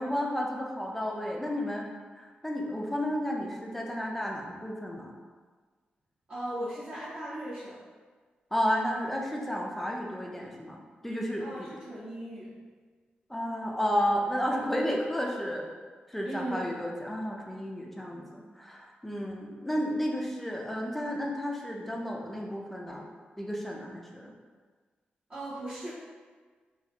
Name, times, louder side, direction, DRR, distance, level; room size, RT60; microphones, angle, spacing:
voice 1, 0.0-1.9 2.2-5.1 8.5-11.7 13.3-15.6 16.1-23.1 23.4-24.3, equal, 5° left, -1 dB, 0.5 m, -32 dB
voice 2, 6.3-7.8 11.4-12.5 16.2-16.7 25.3-25.9, right 1 dB, 50° right, -13 dB, 1.3 m, -37 dB
4.0 x 2.0 x 2.8 m, 1.5 s
cardioid pair, 70°, 3 cm